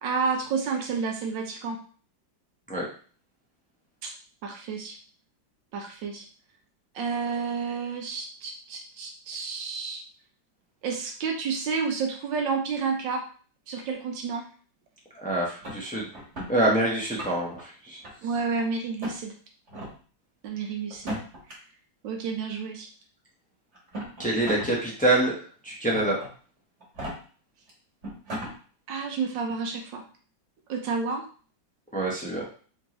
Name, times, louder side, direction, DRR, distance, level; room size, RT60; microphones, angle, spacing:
voice 1, 0.0-1.8 4.0-4.1 4.4-5.0 5.7-6.2 6.9-10.0 10.8-13.2 13.7-14.4 18.2-19.3 20.4-21.2 22.0-22.9 28.9-30.0 30.7-31.2, right 5 dB, 75° right, 3 dB, 1.5 m, -30 dB
voice 2, 15.1-16.1 16.5-18.0 24.2-26.2 31.9-32.5, right 1 dB, 10° left, -4 dB, 0.4 m, -26 dB
sound 1, 15.6-16.5 17.0-17.6 18.0-18.6 19.0-19.2 19.7-19.9 20.9-21.5 22.6-22.7 23.7-24.7 25.1-25.2 25.9-26.3 26.8-27.1 27.7-27.8 28.0-28.5, equal, 40° right, 1.4 m, -36 dB
4.4 x 3.0 x 3.0 m, 0.41 s
omnidirectional pair, 2.1 m